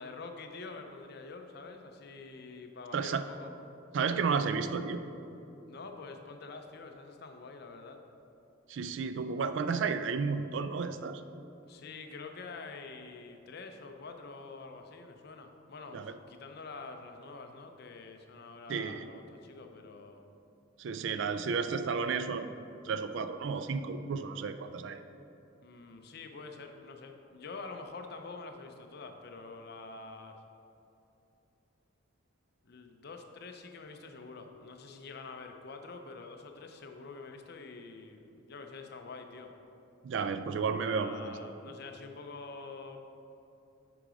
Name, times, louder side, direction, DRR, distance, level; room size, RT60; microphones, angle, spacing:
voice 1, 0.0-3.5 5.7-8.0 11.7-20.2 25.6-30.4 32.6-39.5 40.8-43.0, left 3 dB, 50° left, 5 dB, 0.5 m, -46 dB
voice 2, 3.9-5.0 8.7-11.2 15.9-16.1 18.7-19.1 20.8-22.5 22.8-25.0 40.0-41.3, right 5 dB, 60° right, 10 dB, 0.3 m, -32 dB
7.9 x 3.8 x 4.9 m, 2.8 s
head